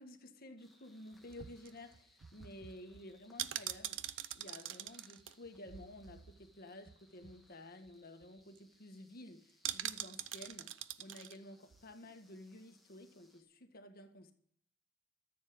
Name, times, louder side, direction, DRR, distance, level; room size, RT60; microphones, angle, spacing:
voice 1, 0.0-4.0 4.3-14.3, left 1 dB, 50° left, 1.6 m, -53 dB
sound 1, 0.6-13.4, left 1 dB, ahead, 1.5 m, -70 dB
sound 2, 1.1-6.6 6.9-7.0 7.2-7.5 7.9-8.0 8.2-8.6 9.6-11.4 11.7-11.8, right 12 dB, 75° right, 0.6 m, -44 dB
14.0 x 7.5 x 8.0 m
head